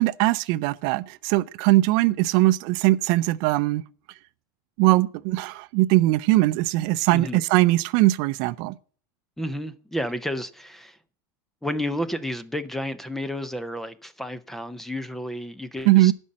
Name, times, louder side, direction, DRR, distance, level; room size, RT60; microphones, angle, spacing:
voice 1, 0.0-3.8 4.8-8.8 15.9-16.1, right 18 dB, 45° right, 0.5 m, -20 dB
voice 2, 9.4-11.0 11.6-16.1, equal, 5° left, 0.5 m, -31 dB
11.5 x 5.4 x 7.4 m
supercardioid pair, 165°, 10 cm